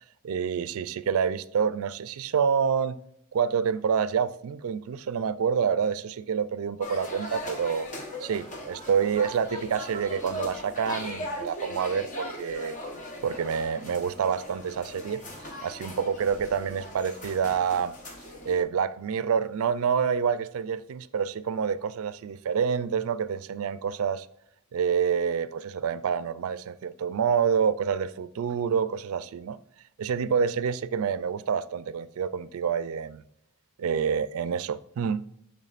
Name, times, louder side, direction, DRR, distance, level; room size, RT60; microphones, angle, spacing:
voice 1, 0.2-3.0 3.3-7.9 8.2-12.8 13.2-15.2 15.6-18.0 18.4-24.3 24.7-29.6 30.0-33.2 33.8-35.2, right 7 dB, 70° right, 0.4 m, -27 dB
sound 1, 6.8-18.6, left 1 dB, 35° left, 1.0 m, -39 dB
10.5 x 3.6 x 2.4 m
head